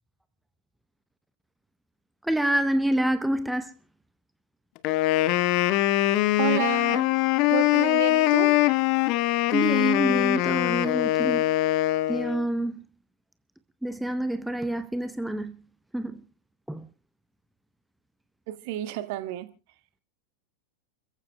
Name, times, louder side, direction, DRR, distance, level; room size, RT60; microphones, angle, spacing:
voice 1, 2.2-3.7 9.5-11.5 12.1-12.8 13.8-15.5 15.9-16.2 16.7-16.9, right 1 dB, 5° right, 0.7 m, -27 dB
Wind instrument woodwind instrument, 4.8-12.4, left 16 dB, 40° left, 0.9 m, -23 dB
voice 2, 6.4-7.1 7.5-8.5 18.5-19.5, right 15 dB, 50° right, 1.6 m, -30 dB
29.5 x 15.0 x 2.2 m
figure-of-eight pair, 90°, 0 cm